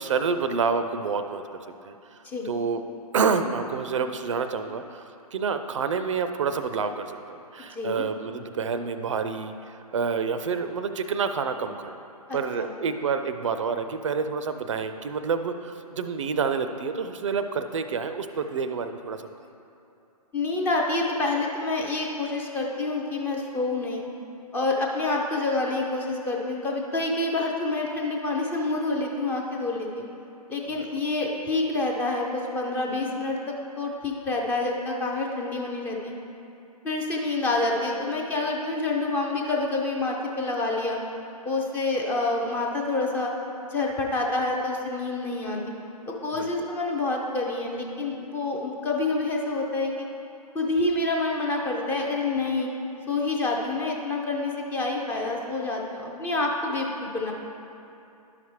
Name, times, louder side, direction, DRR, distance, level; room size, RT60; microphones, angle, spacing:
voice 1, 0.0-1.4 1.8-2.2 2.4-2.8 3.1-12.0 12.3-19.3 46.3-46.5, right 5 dB, 50° right, 9 dB, 0.4 m, -28 dB
voice 2, 7.7-8.0 12.3-12.7 20.3-24.0 24.5-30.1 30.5-36.1 36.8-41.0 41.4-43.3 43.7-45.6 46.1-50.1 50.5-52.7 53.1-57.3, left 2 dB, 10° left, -1 dB, 0.4 m, -27 dB
10.5 x 5.8 x 3.1 m, 2.7 s
figure-of-eight pair, 125°, 20 cm